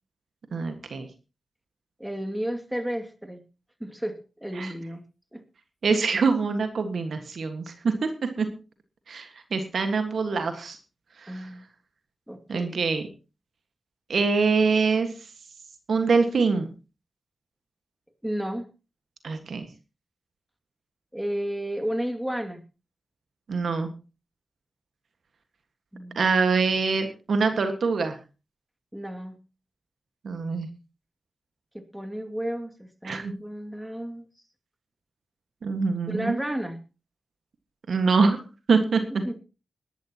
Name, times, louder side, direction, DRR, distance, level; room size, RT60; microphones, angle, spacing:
voice 1, 0.5-1.1 4.6-4.7 5.8-8.5 9.1-10.8 11.2-11.3 12.5-13.0 14.1-15.1 15.9-16.7 19.2-19.7 23.5-23.9 26.1-28.1 30.2-30.7 33.0-33.3 35.6-36.4 37.9-38.4 38.7-39.2, right 4 dB, 75° right, 7 dB, 1.7 m, -24 dB
voice 2, 2.0-3.4 3.8-5.0 5.3-5.4 11.3-11.6 12.3-12.8 18.2-18.7 21.1-22.6 25.9-26.3 28.9-29.4 31.7-34.3 36.1-36.8 39.1-39.4, equal, 10° right, 6 dB, 2.4 m, -32 dB
21.0 x 11.5 x 3.0 m, 0.32 s
cardioid pair, 45°, 0 cm